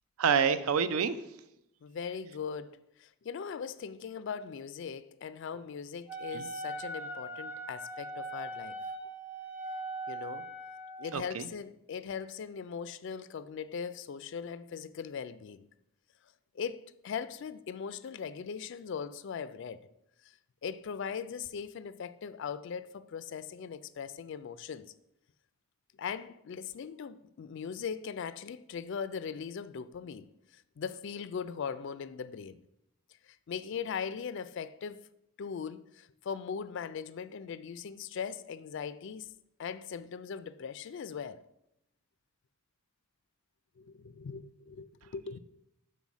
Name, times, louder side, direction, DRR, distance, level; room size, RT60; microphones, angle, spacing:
voice 1, 0.2-1.2 6.3-6.5 11.1-11.5, right 6 dB, 75° right, 0.5 m, -27 dB
voice 2, 1.8-8.8 10.1-10.5 11.0-15.7 16.5-19.8 20.6-24.9 26.0-30.3 30.8-32.6 33.5-35.0 35.4-39.3 39.6-41.4 43.8-45.4, left 6 dB, 55° left, 0.3 m, -39 dB
Wind instrument woodwind instrument, 6.1-11.1, right 1 dB, 10° right, 0.5 m, -40 dB
5.5 x 4.0 x 6.1 m
head